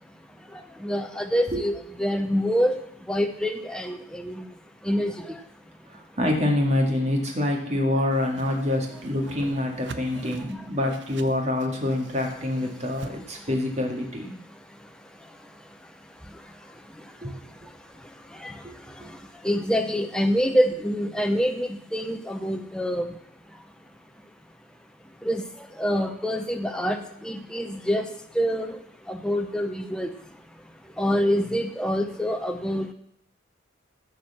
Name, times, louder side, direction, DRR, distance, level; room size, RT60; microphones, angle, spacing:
voice 1, 0.8-1.7 2.0-2.8 3.1-4.4 4.8-5.1 18.4-18.5 19.4-23.1 25.2-25.4 25.8-28.1 28.4-28.8 29.1-30.1 31.0-32.9, equal, 5° left, 5 dB, 0.6 m, -25 dB
voice 2, 5.9-14.3 17.2-17.4 18.6-18.7 19.0-19.1 20.7-20.8, left 1 dB, 35° right, 1 dB, 2.0 m, -26 dB
Whoosh swoosh swish, 8.1-13.1, right 3 dB, 65° right, 0.8 m, -44 dB
13.5 x 4.7 x 7.3 m, 0.71 s
head